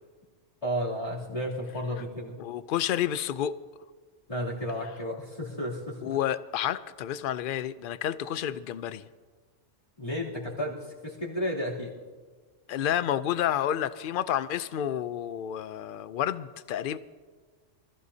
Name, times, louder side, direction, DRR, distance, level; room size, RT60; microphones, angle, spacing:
voice 1, 0.6-2.4 4.3-6.2 10.0-11.9, equal, 25° left, -6 dB, 3.0 m, -33 dB
voice 2, 2.4-3.5 6.0-9.0 12.7-17.0, left 10 dB, 60° left, 14 dB, 0.6 m, -30 dB
25.0 x 15.0 x 2.8 m, 1.5 s
omnidirectional pair, 1.3 m